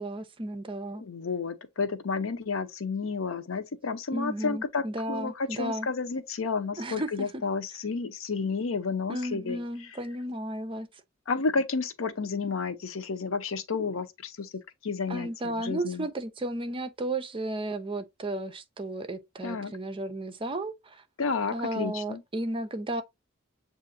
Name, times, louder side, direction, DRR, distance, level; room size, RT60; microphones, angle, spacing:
voice 1, 0.0-1.0 4.1-5.9 6.8-7.4 9.1-10.9 15.1-21.0 21.5-23.0, right 1 dB, 25° right, 0.6 m, -34 dB
voice 2, 1.0-9.6 11.3-14.5 14.8-16.1 19.4-19.7 21.2-22.2, left 4 dB, 90° left, 0.7 m, -31 dB
7.5 x 2.5 x 2.6 m
head